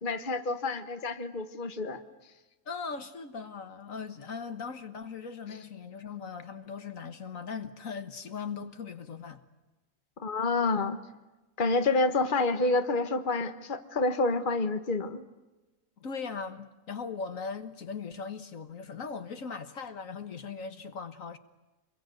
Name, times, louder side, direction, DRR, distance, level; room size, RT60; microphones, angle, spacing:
voice 1, 0.0-2.0 10.2-11.0 11.6-15.2, left 3 dB, 35° left, 1.6 m, -28 dB
voice 2, 2.7-9.4 16.0-21.4, left 5 dB, 70° left, 1.8 m, -39 dB
27.5 x 22.5 x 9.3 m
omnidirectional pair, 1.5 m